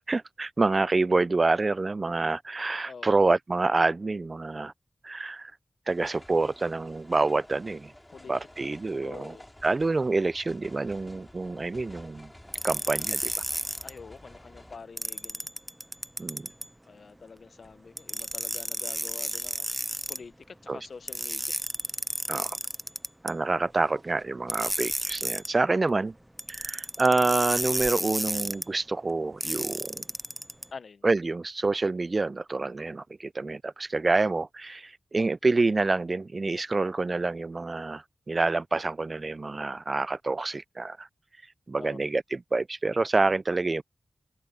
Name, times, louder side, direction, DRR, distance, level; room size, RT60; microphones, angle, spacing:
voice 1, 0.1-4.7 5.0-5.5 5.9-7.9 8.3-9.4 9.6-12.3 12.6-13.3 16.2-16.5 20.7-20.8 22.3-22.6 23.2-26.1 26.5-30.0 31.0-41.1 41.7-43.8, right 3 dB, 45° right, 0.4 m, -27 dB
voice 2, 2.9-3.2 8.1-8.3 9.0-9.4 13.8-15.5 16.9-19.7 20.1-21.5 30.7-31.0 41.8-42.0, left 5 dB, 75° left, 0.7 m, -46 dB
sound 1, 5.9-14.8, left 1 dB, 15° left, 2.7 m, -51 dB
sound 2, 12.5-13.9 15.0-16.7 18.0-20.2 21.1-23.3 24.5-25.5 26.4-28.6 29.4-30.6, right 1 dB, 10° right, 0.6 m, -32 dB
wide cardioid pair, 70°, 0 cm